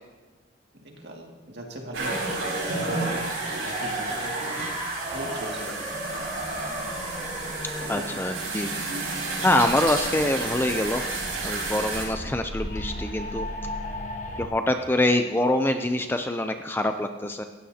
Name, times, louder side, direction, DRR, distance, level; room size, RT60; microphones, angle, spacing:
voice 1, 0.8-2.1 2.7-3.2 3.5-4.4 5.1-5.9 7.8-8.1 12.2-12.3, equal, 55° right, 0 dB, 2.2 m, -39 dB
sound 1, 1.9-12.0, right 3 dB, 80° right, 4.4 m, -31 dB
sound 2, 2.4-8.4 9.5-9.6, right 1 dB, 25° right, 5.1 m, -35 dB
sound 3, 5.9-14.5, left 1 dB, 35° left, 1.3 m, -38 dB
voice 2, 7.9-8.7 9.4-11.0 11.4-13.5 14.4-17.5, left 1 dB, 10° left, 7 dB, 0.4 m, -25 dB
17.0 x 15.0 x 2.8 m, 1.3 s
head